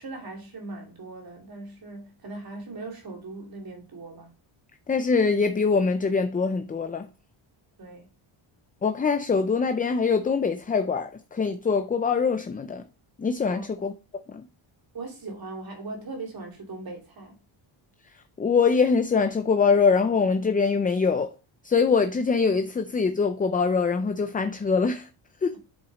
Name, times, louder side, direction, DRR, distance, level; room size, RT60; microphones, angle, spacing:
voice 1, 0.0-4.3 7.8-8.1 13.5-13.7 14.9-17.3, right 3 dB, 45° right, 2.8 m, -39 dB
voice 2, 4.9-7.1 8.8-12.9 13.2-13.9 14.3-14.5 18.1-21.3 21.6-25.1 25.4-25.6, left 5 dB, 20° left, 0.4 m, -23 dB
8.1 x 5.7 x 4.1 m
wide cardioid pair, 155°, 50 cm